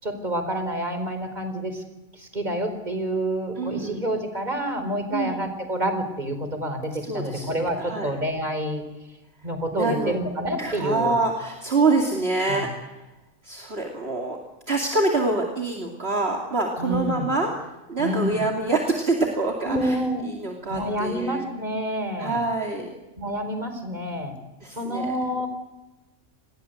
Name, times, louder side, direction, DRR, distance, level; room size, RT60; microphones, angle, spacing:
voice 1, 0.0-1.8 2.1-8.8 9.4-11.2 12.5-12.7 16.8-17.3 18.0-18.4 19.6-20.2 20.7-22.4 23.2-24.4 24.7-25.5, equal, 30° right, 7 dB, 4.6 m, -28 dB
voice 2, 3.6-4.0 5.1-5.4 7.0-7.5 7.8-8.1 9.7-10.2 10.6-13.0 13.4-14.4 14.7-20.0 20.2-21.5 22.2-22.9 24.6-25.2, right 3 dB, 45° right, 1 dB, 3.0 m, -26 dB
29.0 x 21.5 x 7.9 m, 1.1 s
omnidirectional pair, 1.4 m